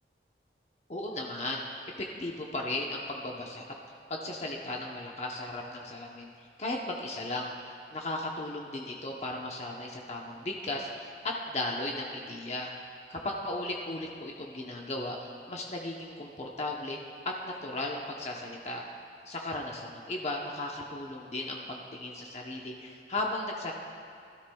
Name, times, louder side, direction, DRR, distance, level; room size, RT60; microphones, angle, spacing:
voice 1, 0.9-3.6 4.1-7.5 7.9-12.7 13.1-15.2 15.5-17.0 17.2-18.8 19.2-23.7, left 2 dB, 40° left, -1 dB, 0.9 m, -36 dB
19.5 x 12.5 x 2.3 m, 2.4 s
head